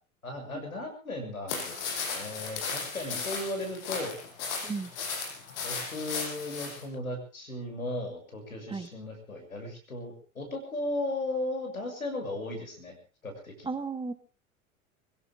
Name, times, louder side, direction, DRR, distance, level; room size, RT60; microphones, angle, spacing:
voice 1, 0.2-4.2 5.6-13.0 13.2-13.7, left 1 dB, 85° left, 4 dB, 6.8 m, -36 dB
sound 1, 1.5-6.8, left 5 dB, 55° left, 7.2 m, -36 dB
voice 2, 13.6-14.1, right 4 dB, 10° right, 9 dB, 1.7 m, -35 dB
25.0 x 16.5 x 3.6 m, 0.36 s
figure-of-eight pair, 90°, 41 cm